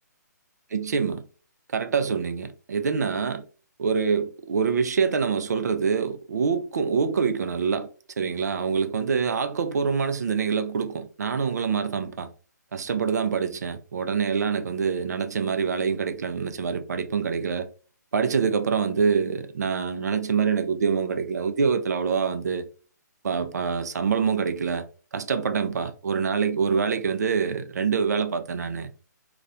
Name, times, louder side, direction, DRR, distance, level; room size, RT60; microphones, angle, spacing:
voice 1, 0.7-1.2 1.7-3.4 3.8-7.9 8.2-12.3 12.7-17.7 18.1-22.7 23.2-24.9 25.1-28.9, right 6 dB, 60° right, 0.4 m, -25 dB
2.4 x 2.1 x 2.6 m
figure-of-eight pair, 135°, 10 cm